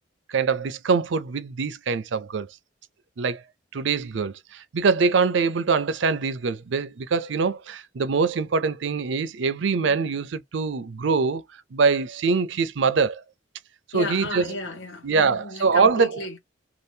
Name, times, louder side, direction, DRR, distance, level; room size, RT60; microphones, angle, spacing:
voice 1, 0.3-2.5 3.2-3.4 3.7-11.4 11.7-13.2 13.9-14.5 15.0-16.1, right 5 dB, 65° right, 0.5 m, -23 dB
voice 2, 13.9-16.4, left 1 dB, 65° left, 1.2 m, -34 dB
2.7 x 2.4 x 3.4 m
head